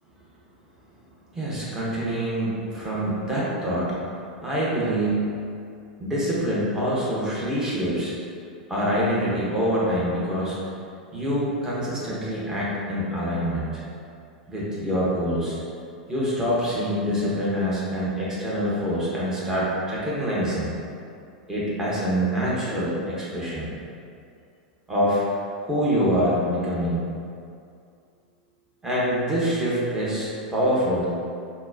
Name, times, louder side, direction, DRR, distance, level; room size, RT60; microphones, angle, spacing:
voice 1, 1.3-4.0 4.4-5.4 6.0-8.1 8.7-10.6 11.1-13.8 14.5-15.6 16.1-20.7 21.5-23.7 24.9-25.2 25.6-27.0 28.8-31.1, equal, 10° right, -8 dB, 1.1 m, -25 dB
4.2 x 2.2 x 2.7 m, 2.4 s
hypercardioid pair, 90°, 4 cm